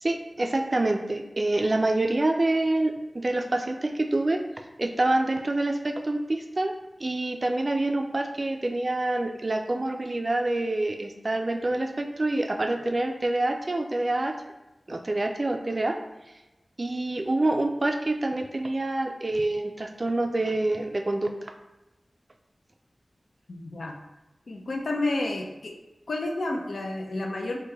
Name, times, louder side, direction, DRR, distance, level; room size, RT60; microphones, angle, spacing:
voice 1, 0.0-4.4 4.8-6.7 7.0-14.4 14.9-16.0 16.8-21.3, right 2 dB, 45° right, 5 dB, 0.3 m, -26 dB
voice 2, 23.5-24.0 24.5-25.8 26.1-27.6, left 2 dB, 85° left, 2 dB, 0.4 m, -30 dB
3.2 x 2.2 x 3.3 m, 1.0 s
wide cardioid pair, 60°, 0 cm